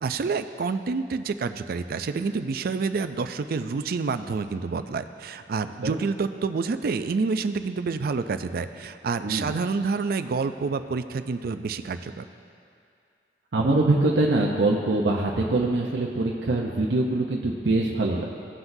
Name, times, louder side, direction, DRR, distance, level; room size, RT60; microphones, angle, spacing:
voice 1, 0.0-12.3, right 4 dB, 55° right, 10 dB, 0.4 m, -28 dB
voice 2, 13.5-18.3, right 2 dB, 85° right, -2 dB, 0.7 m, -23 dB
17.0 x 5.8 x 2.7 m, 2.4 s
head